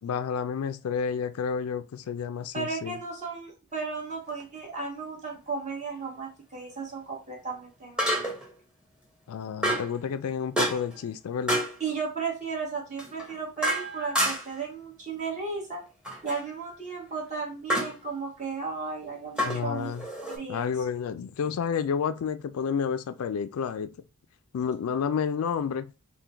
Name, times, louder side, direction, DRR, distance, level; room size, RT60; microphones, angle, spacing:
voice 1, 0.0-3.0 9.3-11.6 19.4-20.1 20.5-23.9 24.5-25.9, left 7 dB, 90° left, 0.4 m, -30 dB
voice 2, 2.5-8.3 11.8-15.8 16.2-19.9 20.3-20.7, right 4 dB, 35° right, 1.4 m, -35 dB
sound 1, 4.3-4.4 8.0-8.5 9.6-10.0 10.6-11.0 11.5-11.8 13.0-14.6 16.0-16.4 17.7-18.0 19.4-20.4, equal, 5° right, 1.0 m, -28 dB
3.7 x 2.2 x 4.4 m
head